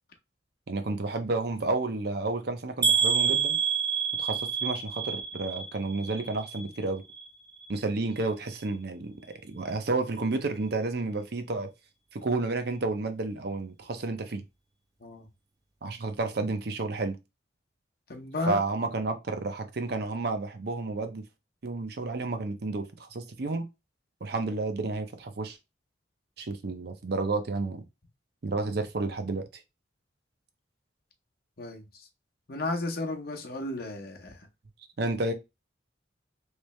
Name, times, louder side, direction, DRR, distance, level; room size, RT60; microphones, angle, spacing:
voice 1, 0.7-3.6 4.2-7.0 7.7-9.2 9.4-11.7 12.1-14.4 15.8-17.2 18.5-21.2 21.6-23.7 24.2-25.6 26.4-27.9 28.4-29.6 35.0-35.3, right 3 dB, 55° right, 0.6 m, -31 dB
sound 1, 2.8-6.8 7.1-7.7 8.2-8.3 8.6-8.7, right 6 dB, 20° right, 0.7 m, -28 dB
voice 2, 18.1-18.6 31.6-31.9 32.5-34.4, left 2 dB, 50° left, 0.8 m, -33 dB
3.2 x 3.2 x 3.1 m
head